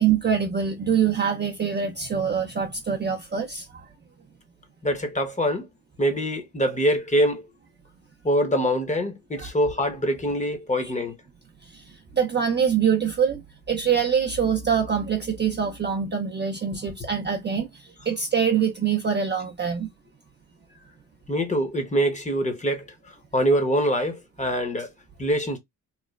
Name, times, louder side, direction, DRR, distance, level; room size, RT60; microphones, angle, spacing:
voice 1, 0.0-3.9 9.4-9.5 10.8-10.9 11.7-19.9, right 7 dB, 25° right, 0.5 m, -24 dB
voice 2, 4.8-5.7 6.0-7.4 8.2-11.2 21.3-22.9 23.3-24.9 25.2-25.6, equal, 15° left, 0.8 m, -24 dB
3.0 x 2.1 x 2.2 m
supercardioid pair, 65°, 43 cm